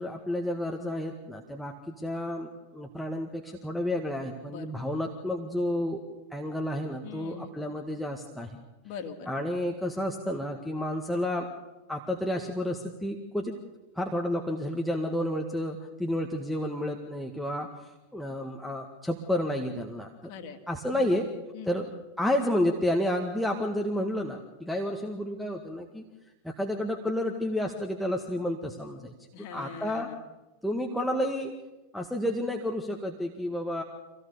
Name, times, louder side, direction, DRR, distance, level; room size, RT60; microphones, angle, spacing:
voice 1, 0.0-6.0 6.3-8.6 9.3-11.5 11.9-13.5 13.9-20.1 20.7-21.3 21.6-21.9 22.2-26.0 26.4-30.1 30.6-31.5 31.9-33.8, left 1 dB, ahead, 1 dB, 1.8 m, -31 dB
voice 2, 7.0-7.5 8.8-9.3 20.3-20.6 20.9-21.2 21.5-21.7 29.3-30.1, left 6 dB, 45° left, 6 dB, 2.5 m, -41 dB
25.5 x 17.5 x 6.9 m, 1.1 s
figure-of-eight pair, 90°, 0 cm